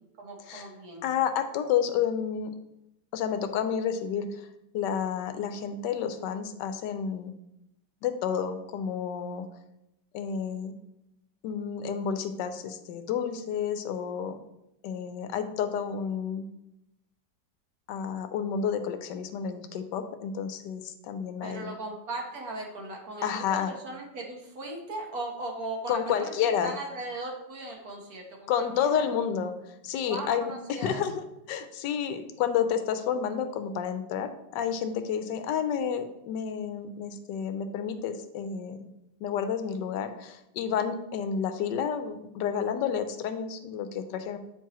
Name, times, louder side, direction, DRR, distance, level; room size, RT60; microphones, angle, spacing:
voice 1, 0.2-1.0 21.4-29.1 30.1-31.0, right 2 dB, 60° right, 1 dB, 1.7 m, -38 dB
voice 2, 1.0-2.5 3.1-4.5 4.7-7.3 8.0-9.5 10.1-10.7 11.4-14.4 14.8-16.5 17.9-21.7 23.2-23.7 25.9-26.7 28.5-38.9 39.2-44.4, left 7 dB, 85° left, 9 dB, 1.2 m, -30 dB
8.5 x 4.6 x 3.0 m, 0.87 s
omnidirectional pair, 1.9 m